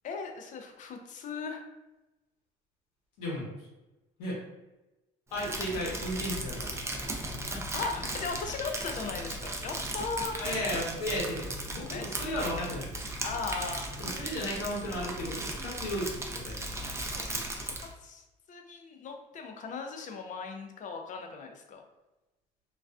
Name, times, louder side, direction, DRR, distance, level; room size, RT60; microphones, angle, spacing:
voice 1, 0.0-1.6 7.7-10.4 11.9-12.1 13.2-13.9 17.0-21.8, left 4 dB, 45° left, 4 dB, 0.4 m, -38 dB
voice 2, 3.2-3.5 4.2-4.4 5.3-6.7 7.3-7.8 10.4-12.9 14.0-16.6, left 1 dB, 85° left, -4 dB, 0.8 m, -34 dB
Crumpling crinkling, 5.3-17.9, right 1 dB, 15° right, 0.4 m, -37 dB
2.3 x 2.2 x 2.3 m, 1.0 s
supercardioid pair, 75°, 18 cm